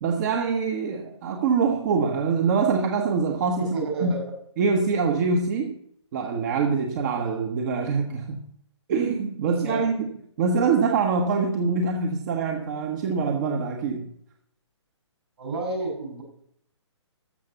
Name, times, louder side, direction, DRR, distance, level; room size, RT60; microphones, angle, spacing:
voice 1, 0.0-3.7 4.0-4.2 4.6-5.8 6.1-8.4 8.9-10.1 10.4-14.1, right 5 dB, 35° right, 4 dB, 1.3 m, -24 dB
voice 2, 3.7-4.2 9.5-9.8 15.4-16.2, right 2 dB, 60° right, 2 dB, 6.1 m, -30 dB
13.5 x 5.9 x 6.9 m, 0.69 s
hypercardioid pair, 145°, 16 cm